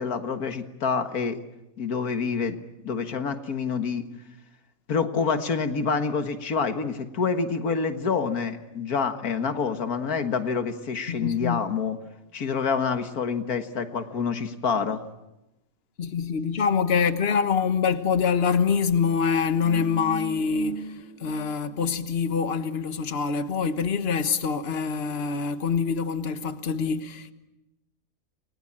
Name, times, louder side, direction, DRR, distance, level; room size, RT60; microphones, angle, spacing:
voice 1, 0.0-1.4 1.8-4.0 4.9-12.0 12.3-15.0, left 5 dB, 90° left, 2.1 m, -27 dB
voice 2, 11.1-11.7 16.0-27.3, left 6 dB, 45° left, 1.5 m, -25 dB
sound 1, 19.3-21.9 22.2-22.4, right 2 dB, 35° right, 5.9 m, -39 dB
29.0 x 21.5 x 8.8 m
omnidirectional pair, 1.5 m